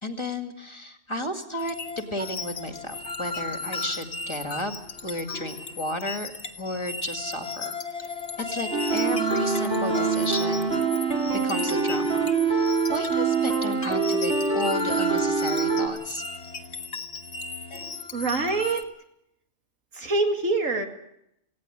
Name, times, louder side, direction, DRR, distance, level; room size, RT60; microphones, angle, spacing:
voice 1, 0.0-4.7 5.0-6.3 6.6-10.8 11.4-16.2, left 1 dB, 20° left, 6 dB, 2.0 m, -33 dB
sound 1, 1.6-18.8, left 3 dB, 60° left, 1.6 m, -35 dB
sound 2, 8.7-15.9, right 5 dB, 70° right, 3.5 m, -25 dB
voice 2, 18.1-18.9 19.9-20.9, right 3 dB, 90° right, 4 dB, 2.6 m, -25 dB
18.5 x 16.5 x 9.8 m, 0.79 s
omnidirectional pair, 1.3 m